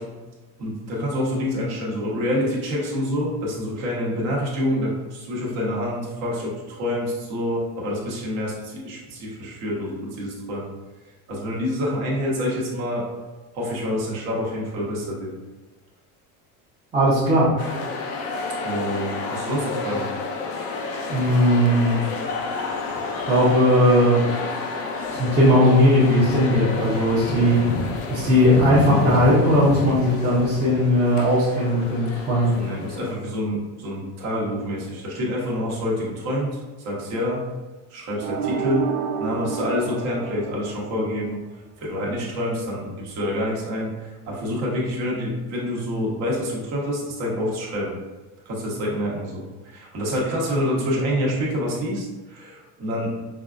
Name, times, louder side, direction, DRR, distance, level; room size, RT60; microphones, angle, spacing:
voice 1, 0.6-10.7 11.3-13.1 13.5-15.3 18.6-20.1 32.5-37.5 37.9-41.4 41.8-48.0 48.4-53.1, equal, 45° right, -4 dB, 1.1 m, -27 dB
voice 2, 16.9-17.5 21.1-22.1 23.3-24.3 25.1-27.7 28.1-32.6, equal, 20° right, -12 dB, 0.8 m, -18 dB
sound 1, 17.6-33.1, left 4 dB, 45° left, 0.4 m, -30 dB
sound 2, 38.2-41.2, right 6 dB, 75° right, 0.5 m, -29 dB
5.4 x 2.4 x 2.5 m, 1.2 s
cardioid pair, 170°, 35 cm